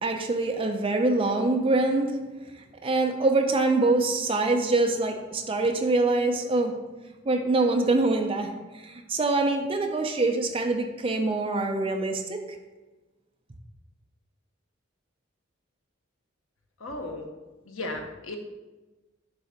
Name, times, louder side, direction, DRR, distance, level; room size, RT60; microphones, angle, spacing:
voice 1, 0.0-2.1 2.8-6.7 7.2-12.4, right 2 dB, 30° right, 4 dB, 0.6 m, -24 dB
voice 2, 16.8-17.3 17.7-18.4, left 2 dB, 85° left, 4 dB, 0.9 m, -35 dB
6.8 x 3.4 x 5.1 m, 1.2 s
head